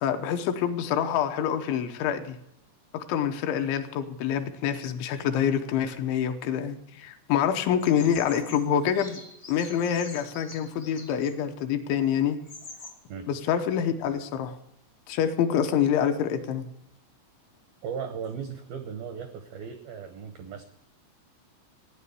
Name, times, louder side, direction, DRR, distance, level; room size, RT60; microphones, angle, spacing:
voice 1, 0.0-2.4 2.9-9.2 9.5-12.4 13.3-14.6 15.1-16.7, left 8 dB, 80° left, 6 dB, 3.2 m, -26 dB
Bird vocalization bird call bird song, 7.8-11.4 12.0-12.1 12.4-12.9, left 3 dB, 55° left, 0.8 m, -45 dB
voice 2, 17.8-20.6, right 7 dB, 85° right, 7 dB, 2.1 m, -37 dB
15.5 x 9.5 x 6.8 m, 0.82 s
omnidirectional pair, 5.5 m